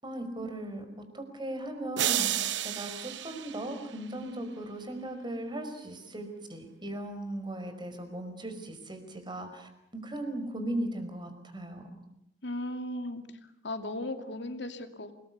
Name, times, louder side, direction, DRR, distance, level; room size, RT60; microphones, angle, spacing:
voice 1, 0.0-12.0, right 1 dB, 25° right, 7 dB, 5.1 m, -38 dB
sound 1, 2.0-4.3, right 11 dB, 90° right, 0.9 m, -32 dB
voice 2, 12.4-13.2 13.6-15.1, left 1 dB, 70° left, 7 dB, 2.6 m, -36 dB
28.5 x 20.5 x 8.3 m, 0.82 s
head